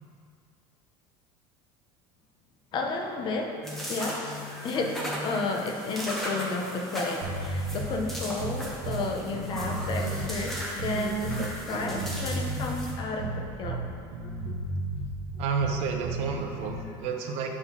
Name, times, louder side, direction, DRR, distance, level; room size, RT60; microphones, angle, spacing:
voice 1, 2.7-13.9 14.2-14.5 17.4-17.5, left 3 dB, 40° left, 2 dB, 0.8 m, -32 dB
sound 1, 3.6-12.9, equal, ahead, 1.2 m, -36 dB
sound 2, 7.2-16.8, right 2 dB, 85° right, 1.2 m, -34 dB
voice 2, 15.4-17.5, right 5 dB, 55° right, 3 dB, 0.9 m, -30 dB
8.1 x 3.7 x 5.8 m, 2.3 s
supercardioid pair, 130°, 12 cm